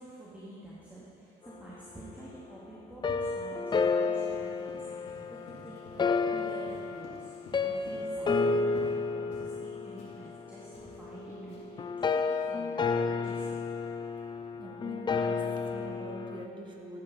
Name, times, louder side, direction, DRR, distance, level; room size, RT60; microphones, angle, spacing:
voice 1, 0.0-7.3 7.6-13.6, right 1 dB, 10° right, -8 dB, 2.3 m, -49 dB
sound 1, 3.0-16.5, left 4 dB, 25° left, 0.6 m, -31 dB
Run, 4.2-9.0 9.3-9.6 10.0-11.8, left 2 dB, 75° left, 3.4 m, -51 dB
voice 2, 14.6-17.0, right 2 dB, 30° right, 1 dB, 1.6 m, -44 dB
14.5 x 10.5 x 4.1 m, 2.6 s
cardioid pair, 110°, 17 cm